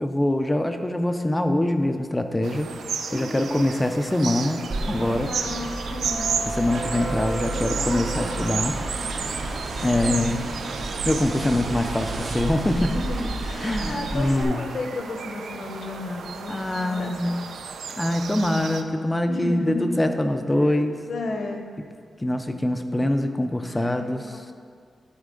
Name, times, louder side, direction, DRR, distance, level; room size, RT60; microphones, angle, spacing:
voice 1, 0.0-2.7 3.1-5.3 6.6-8.8 9.8-10.4 11.1-12.9 13.6-14.7 16.5-17.4 18.0-21.0 22.2-24.2, left 1 dB, 10° left, 7 dB, 0.4 m, -24 dB
sound 1, 2.4-18.8, right 6 dB, 85° right, 0.4 m, -34 dB
voice 2, 3.1-3.7 5.3-6.3 7.5-8.2 10.0-10.5 12.7-17.8 19.2-19.9 20.6-21.6 23.7-24.4, left 2 dB, 55° left, 3 dB, 0.8 m, -34 dB
sound 2, 4.7-14.4, right 2 dB, 55° right, 0.8 m, -31 dB
12.0 x 4.5 x 3.8 m, 2.1 s
wide cardioid pair, 175°, 0 cm